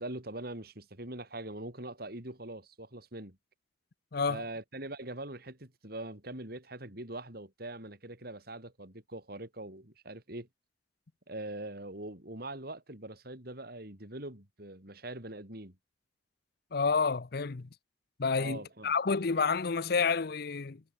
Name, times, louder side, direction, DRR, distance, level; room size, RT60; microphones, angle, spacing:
voice 1, 0.0-3.4 4.3-10.5 11.3-15.8 18.4-19.0, right 1 dB, 55° right, 4.7 m, -42 dB
voice 2, 4.1-4.4 16.7-17.7 18.2-20.8, left 5 dB, 55° left, 0.7 m, -29 dB
head